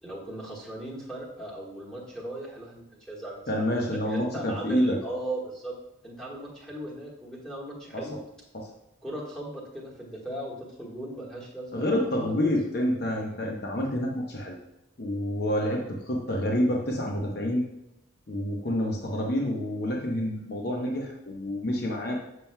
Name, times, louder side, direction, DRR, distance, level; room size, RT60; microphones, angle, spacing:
voice 1, 0.0-5.7 6.0-8.2 9.0-12.1, right 1 dB, 5° left, -7 dB, 1.5 m, -38 dB
voice 2, 3.5-5.0 7.9-8.1 8.5-8.7 11.7-14.5 15.0-17.7 18.3-22.3, left 1 dB, 50° left, 0 dB, 0.9 m, -28 dB
7.2 x 6.1 x 2.2 m, 0.91 s
head